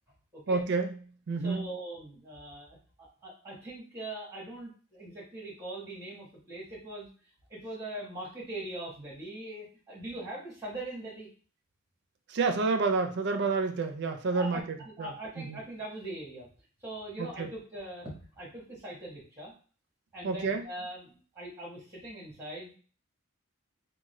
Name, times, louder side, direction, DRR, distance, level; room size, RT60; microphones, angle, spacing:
voice 1, 0.5-1.7 12.3-15.6 17.2-17.5 20.2-20.7, right 4 dB, 55° right, 6 dB, 0.5 m, -30 dB
voice 2, 1.4-7.1 7.5-11.3 14.3-16.5 16.8-19.5 20.1-22.8, right 1 dB, 15° right, -4 dB, 1.2 m, -41 dB
3.6 x 2.1 x 3.1 m, 0.40 s
head